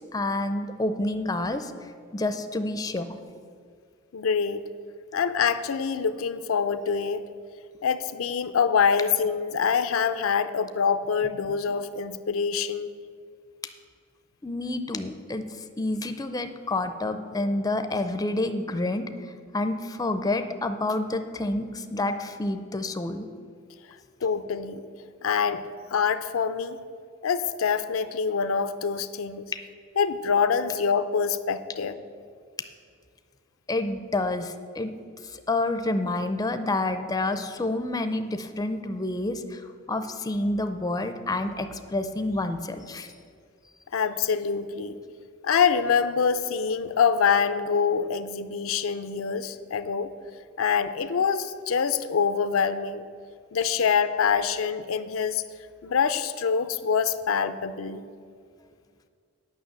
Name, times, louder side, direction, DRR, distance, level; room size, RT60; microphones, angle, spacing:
voice 1, 0.0-1.7 2.1-3.2 14.4-15.4 15.8-19.1 19.5-23.3 33.7-34.9 35.2-43.1, left 2 dB, 20° left, 9 dB, 0.5 m, -28 dB
voice 2, 4.1-4.6 5.1-7.2 7.8-12.9 24.2-24.8 25.2-25.6 25.9-26.8 27.2-29.4 30.0-32.0 43.9-45.0 45.4-50.1 50.6-53.0 53.5-55.4 55.8-58.0, left 6 dB, 80° left, 11 dB, 0.5 m, -25 dB
8.9 x 6.0 x 8.2 m, 2.2 s
head